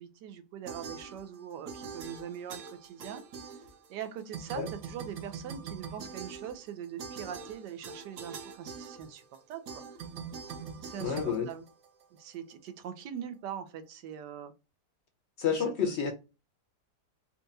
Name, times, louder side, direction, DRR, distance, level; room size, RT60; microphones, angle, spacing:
voice 1, 0.0-3.2 3.9-9.8 10.8-11.6 12.2-14.5 15.8-15.9, right 9 dB, 85° right, 1.3 m, -42 dB
sound 1, 0.7-1.4 1.7-4.0 4.3-12.2, right 6 dB, 65° right, 1.0 m, -43 dB
voice 2, 11.0-11.5 15.4-16.1, left 7 dB, 60° left, 0.7 m, -29 dB
4.3 x 2.3 x 2.6 m
omnidirectional pair, 1.8 m